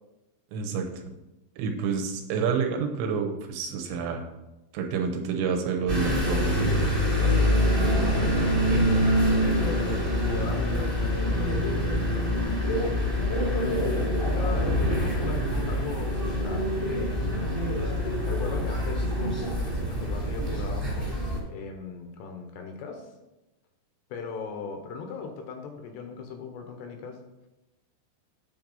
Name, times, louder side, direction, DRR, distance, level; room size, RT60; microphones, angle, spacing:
voice 1, 0.5-1.0 1.6-4.3 4.7-6.9, right 6 dB, 75° right, 4 dB, 3.1 m, -29 dB
sound 1, 5.9-21.4, equal, 10° right, 1.2 m, -25 dB
voice 2, 8.0-8.6 9.6-11.9 12.1-12.6 13.3-16.7 16.9-17.6 18.3-23.1 24.1-27.2, left 5 dB, 80° left, 4 dB, 2.8 m, -38 dB
9.5 x 4.5 x 5.4 m, 1.0 s
omnidirectional pair, 5.3 m